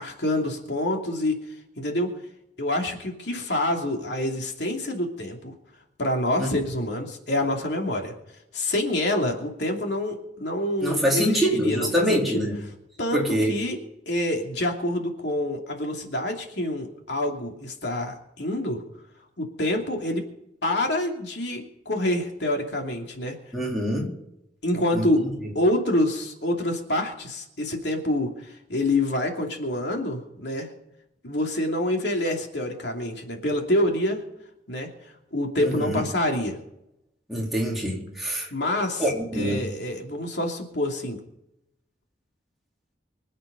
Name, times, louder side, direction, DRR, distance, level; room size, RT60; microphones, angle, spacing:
voice 1, 0.0-1.4 1.8-2.1 2.6-5.5 6.0-8.1 8.5-11.9 12.1-12.5 13.0-13.8 14.1-18.8 19.4-20.3 20.6-23.4 24.6-25.3 25.5-30.7 31.2-34.2 34.7-34.9 35.3-36.6 38.5-39.0 39.3-41.2, left 1 dB, 70° left, 2 dB, 2.8 m, -27 dB
voice 2, 10.8-12.6 13.1-13.5 23.5-24.1 24.9-25.1 35.6-36.0 37.3-38.5 39.0-39.6, equal, ahead, -4 dB, 3.8 m, -25 dB
25.0 x 8.7 x 5.3 m, 0.84 s
head